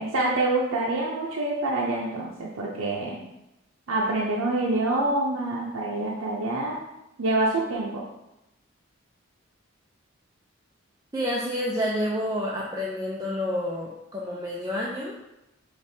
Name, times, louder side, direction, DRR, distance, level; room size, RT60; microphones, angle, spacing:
voice 1, 0.0-3.2 3.9-6.8 7.2-8.0, right 2 dB, 85° right, -3 dB, 0.6 m, -26 dB
voice 2, 11.1-15.1, equal, 15° right, -4 dB, 0.4 m, -29 dB
5.1 x 3.1 x 2.7 m, 0.88 s
head